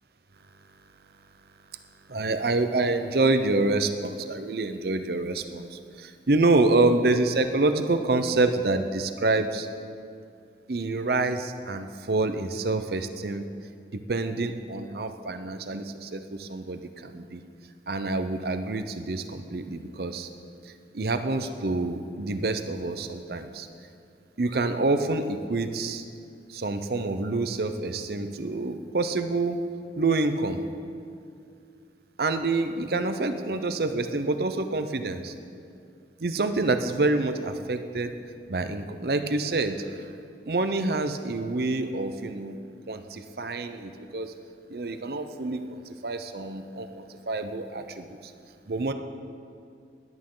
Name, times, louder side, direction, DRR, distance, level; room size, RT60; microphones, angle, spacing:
voice 1, 2.1-9.7 10.7-13.4 13.9-17.4 17.9-20.3 20.9-23.7 24.4-26.0 26.5-29.6 30.0-30.6 32.2-35.3 36.2-38.1 38.5-40.1 40.5-42.6 42.9-44.3 44.7-48.3 48.7-48.9, right 2 dB, 60° right, 9 dB, 0.7 m, -27 dB
16.5 x 11.0 x 3.9 m, 2.4 s
head